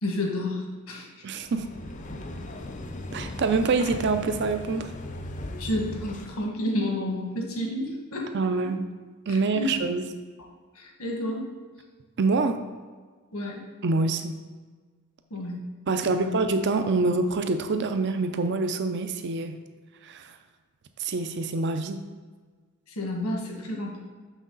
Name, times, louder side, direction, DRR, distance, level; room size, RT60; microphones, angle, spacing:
voice 1, 0.0-1.2 5.6-8.3 8.6-8.7 9.3-9.7 10.7-11.5 13.3-13.6 15.3-15.6 15.9-16.3 22.9-24.0, left 1 dB, 85° left, 0 dB, 1.6 m, -31 dB
voice 2, 1.2-1.7 3.1-4.9 8.3-8.8 9.3-10.0 12.2-12.6 13.8-14.4 15.9-19.6 20.0-20.3 21.0-22.0, right 3 dB, 50° right, 8 dB, 0.5 m, -26 dB
sound 1, 1.4-6.5, left 1 dB, 35° left, 0.5 m, -38 dB
6.3 x 6.2 x 3.9 m, 1.4 s
head